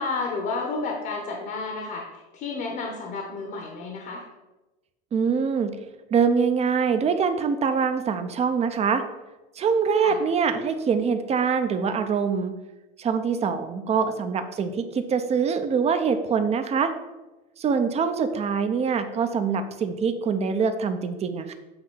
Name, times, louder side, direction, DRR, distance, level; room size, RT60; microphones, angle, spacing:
voice 1, 0.0-4.2 10.0-10.2 13.9-14.0, left 3 dB, 50° left, 2 dB, 1.1 m, -31 dB
voice 2, 5.1-5.7 6.1-9.0 9.6-12.5 13.0-16.9 17.6-21.5, right 6 dB, 30° right, 8 dB, 0.7 m, -24 dB
7.8 x 2.7 x 5.6 m, 1.1 s
supercardioid pair, 115°, 21 cm